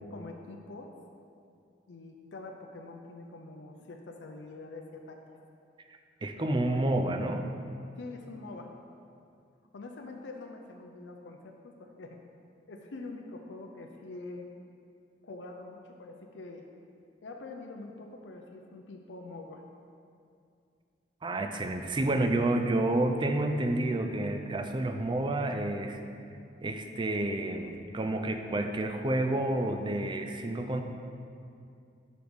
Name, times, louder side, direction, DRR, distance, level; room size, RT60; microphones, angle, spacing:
voice 1, 0.0-0.9 1.9-5.2 6.4-6.8 8.0-8.7 9.7-12.2 12.7-14.5 15.2-16.6 17.2-19.6, left 3 dB, 80° left, 3 dB, 0.6 m, -45 dB
voice 2, 6.2-7.5 21.2-26.0 26.6-30.8, right 1 dB, 25° right, 6 dB, 0.4 m, -29 dB
5.2 x 5.1 x 6.1 m, 2.4 s
head